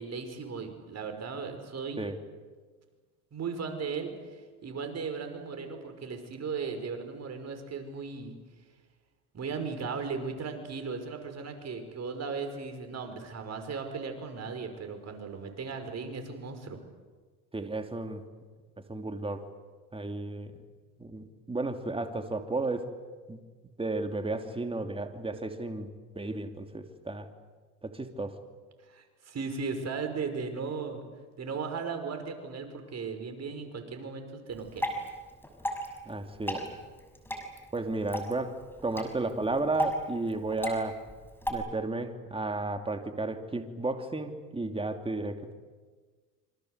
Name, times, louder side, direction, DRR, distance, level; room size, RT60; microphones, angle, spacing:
voice 1, 0.0-2.1 3.3-8.3 9.3-16.8 28.8-31.0 31.4-34.9, right 5 dB, 35° right, 6 dB, 5.7 m, -37 dB
voice 2, 17.5-18.2 18.9-19.5 19.9-20.5 21.0-22.9 23.3-23.4 23.8-25.9 26.1-27.3 27.8-28.4 36.1-36.7 37.7-41.0 41.5-45.5, right 2 dB, 15° right, 6 dB, 3.0 m, -33 dB
Water / Drip, 34.5-41.5, equal, 5° left, 6.4 m, -36 dB
27.0 x 25.5 x 8.2 m, 1.4 s
supercardioid pair, 95°, 43 cm